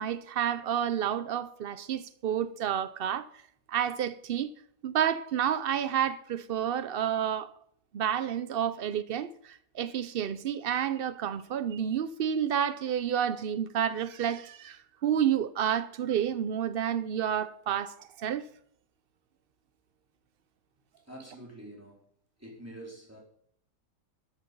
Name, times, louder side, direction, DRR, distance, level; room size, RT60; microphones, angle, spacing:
voice 1, 0.0-3.3 3.7-4.5 4.8-7.5 7.9-18.4, right 9 dB, 85° right, 0.5 m, -30 dB
voice 2, 21.1-22.0 22.4-23.2, right 1 dB, 10° right, 4.2 m, -46 dB
13.0 x 9.5 x 5.4 m
omnidirectional pair, 1.7 m